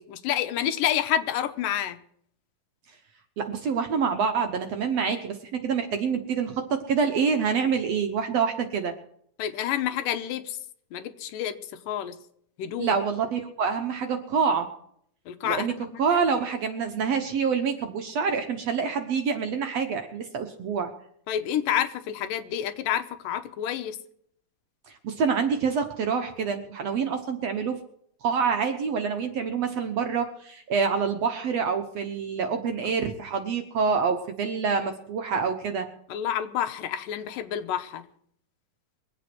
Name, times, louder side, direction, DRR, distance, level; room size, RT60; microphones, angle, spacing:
voice 1, 0.0-2.0 9.4-10.6 10.9-12.2 12.6-12.9 15.3-16.3 21.3-24.0 36.1-38.1, left 10 dB, 80° left, 9 dB, 2.5 m, -29 dB
voice 2, 3.4-8.9 12.8-14.7 15.4-15.7 16.0-20.9 24.9-27.8 28.2-35.9, right 6 dB, 60° right, 6 dB, 1.9 m, -26 dB
23.0 x 8.3 x 6.1 m, 0.67 s
omnidirectional pair, 4.0 m